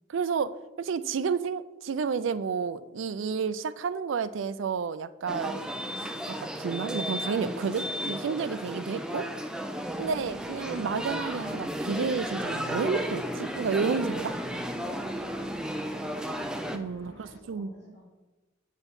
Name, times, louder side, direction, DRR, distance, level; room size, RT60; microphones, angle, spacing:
voice 1, 0.1-0.5 0.8-5.7 6.0-6.1 6.4-9.3 10.0-14.4 16.7-17.7, right 5 dB, 75° right, 14 dB, 0.4 m, -31 dB
sound 1, 5.3-16.8, equal, 5° right, 0.4 m, -34 dB
voice 2, 8.6-9.2 10.0-10.2 17.0-18.1, equal, 35° left, -6 dB, 1.8 m, -53 dB
sound 2, 9.8-17.4, left 4 dB, 80° left, 0.5 m, -53 dB
8.0 x 4.4 x 5.3 m, 1.2 s
head